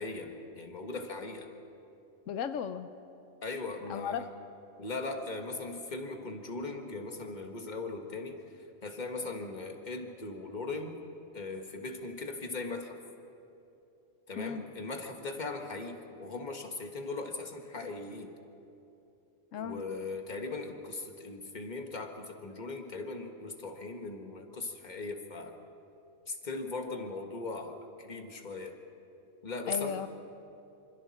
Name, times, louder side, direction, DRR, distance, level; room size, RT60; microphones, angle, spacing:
voice 1, 0.0-1.5 3.4-4.3 4.8-11.0 11.3-13.0 14.3-18.3 19.6-25.6 26.3-28.8 29.4-30.0, left 3 dB, 35° left, 4 dB, 1.7 m, -39 dB
voice 2, 2.3-2.9 3.9-4.2 14.4-14.6 19.5-19.8 29.7-30.1, left 7 dB, 85° left, 10 dB, 1.1 m, -35 dB
27.0 x 26.5 x 4.3 m, 2.8 s
omnidirectional pair, 1.3 m